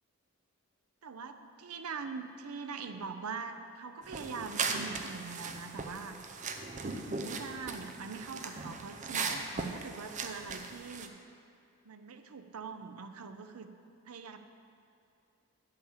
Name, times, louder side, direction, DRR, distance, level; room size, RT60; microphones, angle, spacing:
voice 1, 1.0-6.2 6.8-11.2 11.8-13.7 14.1-14.4, right 5 dB, 90° right, 8 dB, 0.6 m, -43 dB
sound 1, 4.0-11.1, right 4 dB, 35° right, 0.5 m, -38 dB
8.6 x 5.8 x 7.1 m, 2.5 s
head